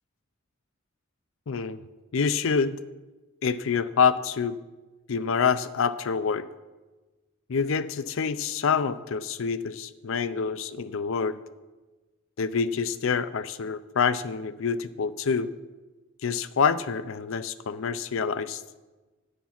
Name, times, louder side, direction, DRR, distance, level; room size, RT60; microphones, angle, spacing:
voice 1, 1.5-1.8 2.1-2.8 3.4-4.6 5.1-6.5 7.5-11.4 12.4-15.5 16.2-18.6, left 6 dB, 65° left, 14 dB, 0.5 m, -26 dB
10.0 x 8.2 x 5.8 m, 1.2 s
head